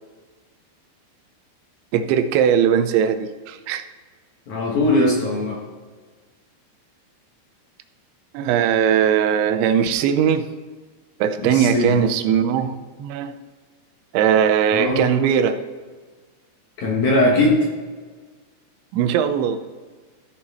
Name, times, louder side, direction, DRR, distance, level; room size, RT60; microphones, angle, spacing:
voice 1, 1.9-3.9 8.3-10.5 11.2-13.3 14.1-15.6 18.9-19.6, right 8 dB, 90° right, 9 dB, 3.1 m, -19 dB
voice 2, 4.5-5.6 11.4-12.0 14.7-15.0 16.8-17.6, left 1 dB, 55° left, -3 dB, 2.3 m, -19 dB
14.5 x 6.4 x 4.2 m, 1.4 s
omnidirectional pair, 5.2 m